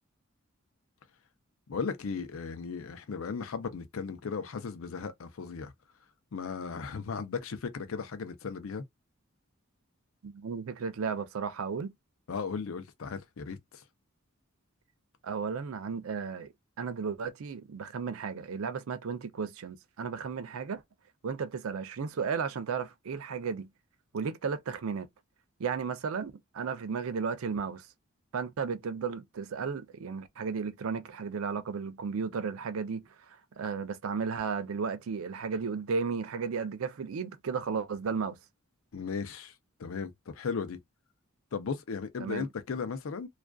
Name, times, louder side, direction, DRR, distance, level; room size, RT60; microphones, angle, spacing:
voice 1, 1.7-5.7 6.3-8.8 12.3-13.8 38.9-39.5 39.8-40.8 41.5-43.3, left 5 dB, 70° left, 0.5 m, -36 dB
voice 2, 10.2-11.9 15.2-16.5 16.8-20.8 21.2-23.7 24.1-25.1 25.6-27.9 28.3-38.4 42.2-42.5, right 5 dB, 75° right, 0.4 m, -34 dB
2.4 x 2.3 x 2.2 m
head